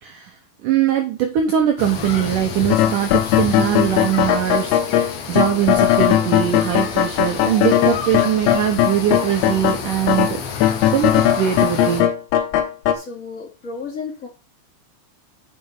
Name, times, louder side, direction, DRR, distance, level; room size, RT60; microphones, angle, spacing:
voice 1, 0.0-0.3 0.6-12.1, right 10 dB, 80° right, 5 dB, 1.8 m, -22 dB
sound 1, 1.8-12.0, left 6 dB, 60° left, 1.8 m, -31 dB
sound 2, 2.7-9.8 10.1-12.9, left 11 dB, 75° left, 3.4 m, -18 dB
voice 2, 12.9-14.3, left 5 dB, 20° left, -1 dB, 2.8 m, -33 dB
8.3 x 7.9 x 3.8 m, 0.29 s
omnidirectional pair, 5.2 m